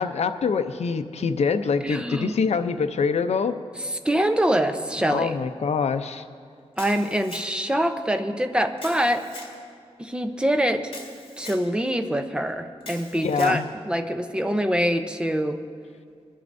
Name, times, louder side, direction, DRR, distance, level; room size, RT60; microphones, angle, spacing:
voice 1, 0.0-3.6 5.1-6.2 13.2-13.7, left 5 dB, 75° left, 9 dB, 0.6 m, -25 dB
voice 2, 1.8-2.4 3.8-5.4 6.8-9.2 10.0-10.9 11.4-15.6, equal, 10° right, 7 dB, 0.7 m, -24 dB
Camera, 6.8-7.7 8.8-9.5 10.9-11.6 12.8-13.6, left 3 dB, 55° left, 3.3 m, -41 dB
22.0 x 11.0 x 2.6 m, 2.2 s
wide cardioid pair, 130°, 11 cm